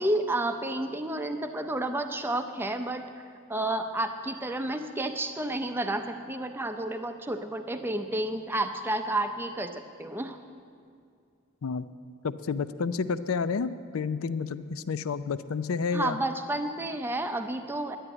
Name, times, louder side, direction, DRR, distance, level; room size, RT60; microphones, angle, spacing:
voice 1, 0.0-3.0 3.5-10.4 15.9-18.0, right 1 dB, 10° right, 6 dB, 0.5 m, -31 dB
voice 2, 12.2-16.2, left 5 dB, 75° left, 14 dB, 0.5 m, -30 dB
11.0 x 10.0 x 8.9 m, 2.3 s
head